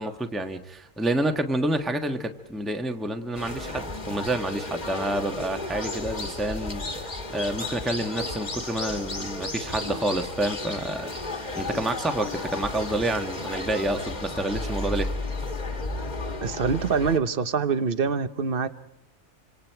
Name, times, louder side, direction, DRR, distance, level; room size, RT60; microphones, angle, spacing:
voice 1, 0.0-11.1 11.5-15.1, right 1 dB, ahead, 5 dB, 1.2 m, -28 dB
sound 1, 3.3-17.2, left 2 dB, 30° left, 1.8 m, -33 dB
voice 2, 16.4-18.7, right 5 dB, 45° right, 12 dB, 1.1 m, -25 dB
27.5 x 26.0 x 4.6 m, 0.83 s
omnidirectional pair, 1.4 m